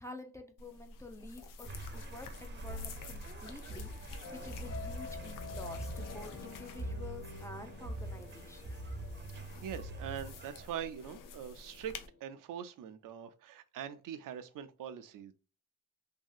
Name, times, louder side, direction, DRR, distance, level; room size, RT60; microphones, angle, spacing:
voice 1, 0.0-8.8, left 2 dB, 10° left, 0.4 m, -49 dB
sound 1, 0.6-12.1, left 3 dB, 85° left, 0.5 m, -49 dB
sound 2, 1.6-10.7, right 1 dB, 35° right, 0.6 m, -44 dB
sound 3, 4.2-12.2, left 6 dB, 55° left, 0.8 m, -50 dB
voice 2, 9.3-11.9 12.2-15.3, right 9 dB, 90° right, 0.5 m, -43 dB
2.8 x 2.7 x 2.3 m
wide cardioid pair, 150°, 32 cm